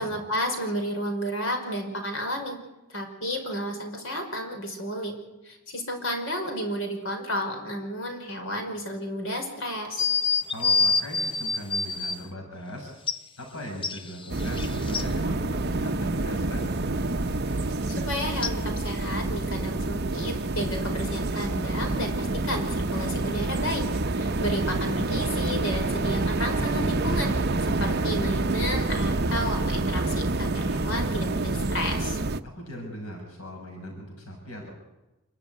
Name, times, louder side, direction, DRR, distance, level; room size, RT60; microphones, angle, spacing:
voice 1, 0.0-2.6 2.9-5.1 5.4-10.1 17.9-23.8 24.1-32.2, equal, 65° left, 4 dB, 5.2 m, -32 dB
sound 1, 10.0-12.2 13.1-13.2 13.8-15.1 18.4-18.5, left 4 dB, 20° left, 0.8 m, -26 dB
voice 2, 10.5-12.9 13.4-15.5 15.7-16.7 24.3-24.7 32.5-34.7, left 1 dB, 85° left, 1 dB, 5.7 m, -39 dB
sound 2, 14.3-32.4, right 2 dB, 45° right, 0.8 m, -27 dB
27.5 x 13.0 x 9.4 m, 1.0 s
head